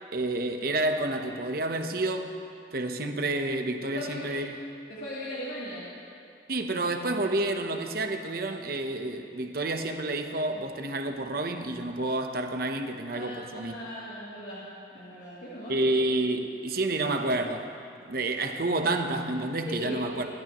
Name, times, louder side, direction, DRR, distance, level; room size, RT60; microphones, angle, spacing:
voice 1, 0.1-2.3 2.7-4.6 6.5-13.8 15.7-17.7 18.1-20.3, right 2 dB, 55° right, 5 dB, 1.0 m, -29 dB
voice 2, 3.8-4.2 4.9-5.9 13.1-14.6 14.9-15.9 19.6-20.3, left 1 dB, 90° left, -11 dB, 3.1 m, -38 dB
27.0 x 12.0 x 3.1 m, 2.5 s
head